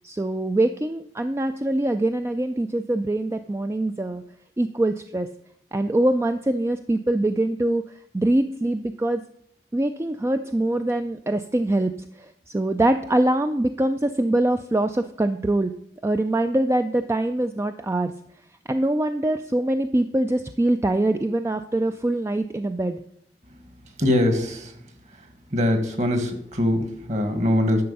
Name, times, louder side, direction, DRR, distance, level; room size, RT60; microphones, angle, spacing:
voice 1, 0.0-4.2 4.6-5.3 5.7-9.2 9.7-15.7 16.0-18.1 18.7-23.0, right 1 dB, 15° right, 8 dB, 0.3 m, -23 dB
voice 2, 24.0-24.7 25.5-27.8, left 1 dB, 40° right, 7 dB, 1.5 m, -22 dB
10.5 x 6.8 x 5.3 m, 0.71 s
head